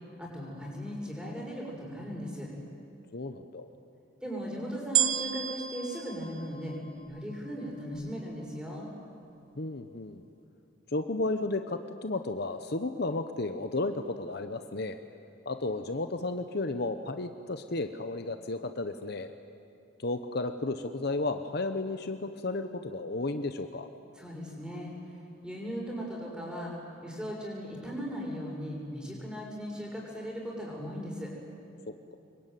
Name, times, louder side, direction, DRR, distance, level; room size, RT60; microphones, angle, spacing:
voice 1, 0.2-2.5 4.2-6.7 7.0-8.9 24.1-26.7 27.0-31.3, equal, 5° right, -2 dB, 6.6 m, -38 dB
voice 2, 3.1-3.7 9.5-10.3 10.9-15.0 15.4-19.3 20.0-23.9, left 2 dB, 55° left, 8 dB, 1.0 m, -33 dB
sound 1, 4.9-7.3 8.0-8.1, right 11 dB, 90° right, 1.1 m, -31 dB
26.5 x 23.0 x 9.3 m, 2.6 s
head